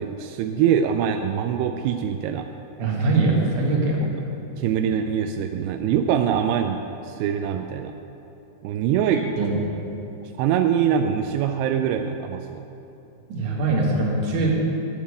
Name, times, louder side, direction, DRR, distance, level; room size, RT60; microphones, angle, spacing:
voice 1, 0.0-2.5 4.6-6.8 7.0-8.0 8.6-9.2 10.2-12.7, right 8 dB, 85° right, 6 dB, 2.3 m, -23 dB
voice 2, 2.8-4.0 9.4-9.5 13.3-14.7, right 3 dB, 55° right, -3 dB, 2.7 m, -22 dB
10.0 x 7.4 x 8.6 m, 2.9 s
omnidirectional pair, 5.2 m